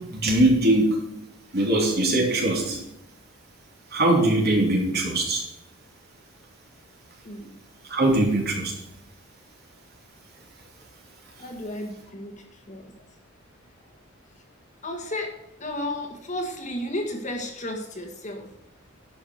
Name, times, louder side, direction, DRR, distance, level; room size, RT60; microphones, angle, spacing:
voice 1, 0.1-1.0 1.5-2.8 3.9-5.4 7.9-8.7, right 1 dB, 50° right, -2 dB, 3.4 m, -21 dB
voice 2, 7.2-7.6 11.4-12.9 14.8-15.3 15.6-18.5, left 1 dB, 35° left, 3 dB, 1.8 m, -33 dB
11.5 x 6.2 x 6.4 m, 0.83 s
head